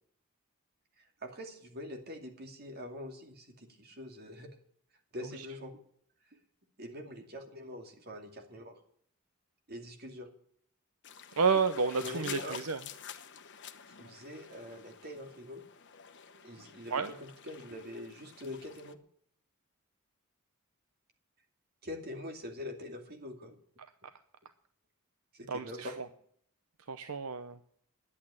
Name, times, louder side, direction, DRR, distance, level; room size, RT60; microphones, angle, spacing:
voice 1, 1.2-4.5 5.1-5.8 6.8-8.8 9.7-10.3 12.0-12.6 14.0-15.6 16.4-19.0 21.8-23.6 25.3-25.9, left 1 dB, 45° right, 4 dB, 2.5 m, -44 dB
sound 1, 11.0-18.9, left 8 dB, 55° left, 1.1 m, -49 dB
voice 2, 11.4-12.8 16.9-17.1 25.5-26.0 26.9-27.6, right 5 dB, 70° right, 10 dB, 0.8 m, -30 dB
11.0 x 8.6 x 9.7 m, 0.63 s
head